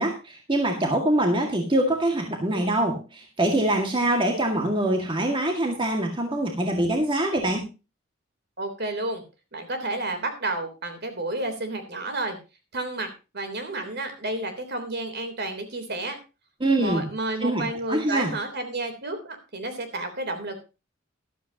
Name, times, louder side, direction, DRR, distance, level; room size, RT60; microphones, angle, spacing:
voice 1, 0.0-7.7 16.6-17.1 17.4-18.3, right 1 dB, 25° right, 2 dB, 2.0 m, -24 dB
voice 2, 8.6-9.2 9.5-12.4 12.7-16.2 16.8-20.6, right 2 dB, 55° right, 7 dB, 3.5 m, -31 dB
14.0 x 13.0 x 2.9 m, 0.30 s
head